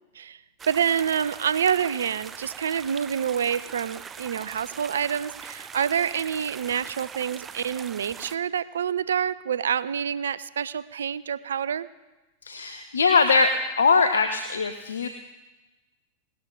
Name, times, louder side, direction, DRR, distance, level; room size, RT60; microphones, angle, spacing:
sound 1, 0.6-8.4, right 6 dB, 20° right, 0.7 m, -41 dB
voice 1, 0.7-11.9, right 8 dB, 65° right, 18 dB, 0.5 m, -27 dB
voice 2, 12.4-15.1, left 4 dB, 70° left, 8 dB, 0.7 m, -21 dB
18.5 x 12.5 x 3.9 m, 1.1 s
figure-of-eight pair, 90°, 0 cm